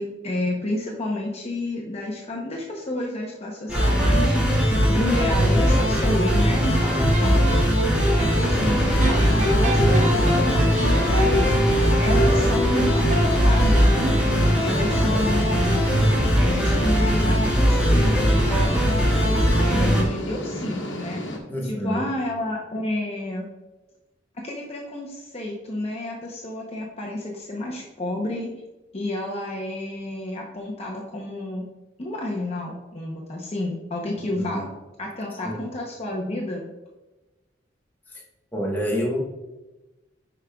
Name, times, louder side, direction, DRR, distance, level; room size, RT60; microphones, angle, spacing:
voice 1, 0.0-4.6 4.9-14.2 14.6-15.8 16.4-19.1 19.6-21.2 21.6-23.5 24.3-28.5 28.9-31.7 32.0-34.7 35.0-36.6, left 1 dB, 35° left, -1 dB, 0.8 m, -30 dB
sound 1, 3.7-20.0, equal, 5° right, 2.4 m, -20 dB
sound 2, 6.8-8.2 9.0-14.5, equal, 40° right, 1.2 m, -27 dB
voice 2, 6.9-7.4 15.1-15.3 21.5-22.0 34.3-34.6 35.4-35.5 38.1-38.2 38.5-39.2, equal, 10° left, -3 dB, 1.2 m, -28 dB
sound 3, 8.4-21.4, equal, 80° left, 1.1 m, -32 dB
10.5 x 5.0 x 2.3 m, 1.1 s
head